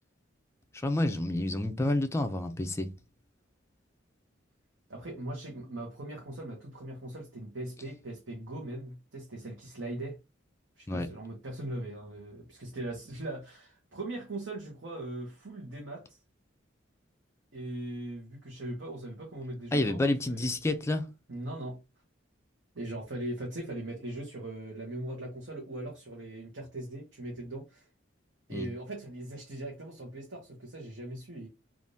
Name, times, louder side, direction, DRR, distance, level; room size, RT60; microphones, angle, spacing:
voice 1, 0.7-2.9 10.9-11.1 19.7-21.1 28.5-28.7, left 1 dB, 15° left, 0.4 m, -29 dB
voice 2, 4.9-10.2 10.8-16.2 17.5-20.0 20.3-20.5 21.3-21.8 22.7-27.9 28.5-31.5, right 1 dB, 65° right, 1.0 m, -40 dB
3.5 x 2.5 x 2.7 m
head